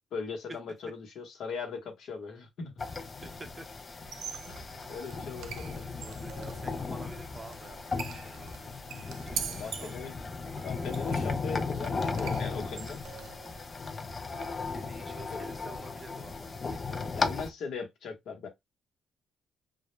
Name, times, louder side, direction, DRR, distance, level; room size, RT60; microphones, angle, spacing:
voice 1, 0.1-2.7 4.5-5.8 9.5-10.1 10.6-13.0 15.3-15.5 17.1-18.5, left 5 dB, 70° left, 0.9 m, -39 dB
sound 1, 2.8-17.5, left 4 dB, 35° left, 0.4 m, -36 dB
voice 2, 3.2-3.7 5.8-8.7 9.2-10.0 14.7-17.1, right 3 dB, 25° right, 0.6 m, -50 dB
Squeak, 4.0-13.6, right 7 dB, 75° right, 0.4 m, -44 dB
2.1 x 2.1 x 3.0 m
cardioid pair, 90°, 0 cm